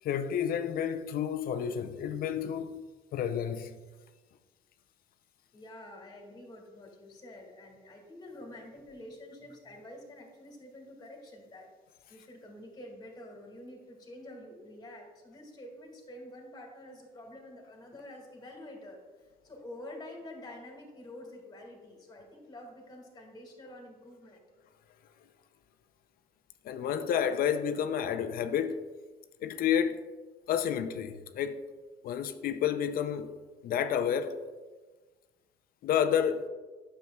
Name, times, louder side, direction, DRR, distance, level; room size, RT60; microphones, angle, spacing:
voice 1, 0.0-2.8 3.1-3.7 26.6-28.8 29.4-30.0 30.5-31.6 32.0-33.3 33.6-34.4 35.8-36.5, left 8 dB, 60° left, 0.5 m, -30 dB
voice 2, 5.5-11.7 12.1-24.4, left 1 dB, 25° left, 1.9 m, -48 dB
9.1 x 6.8 x 2.3 m
cardioid pair, 110°, 17 cm